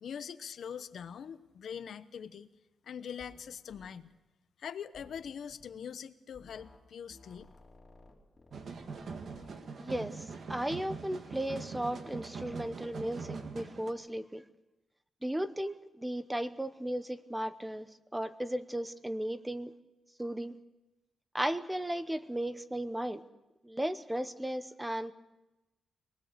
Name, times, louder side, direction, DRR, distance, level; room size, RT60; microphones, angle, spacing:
voice 1, 0.0-2.5 2.8-4.1 4.6-7.5, left 7 dB, 70° left, 12 dB, 0.9 m, -43 dB
sound 1, 3.2-3.4 3.7-3.9 4.9-5.7 6.3-6.8 7.1-9.6, left 2 dB, 20° left, 3.9 m, -57 dB
sound 2, 8.5-13.9, right 4 dB, 60° right, 1.9 m, -43 dB
voice 2, 9.8-14.4 15.2-19.7 20.2-20.5 21.3-23.2 23.6-25.1, right 1 dB, 10° right, 12 dB, 0.9 m, -35 dB
25.0 x 19.5 x 6.8 m, 1.0 s
cardioid pair, 115°, 0 cm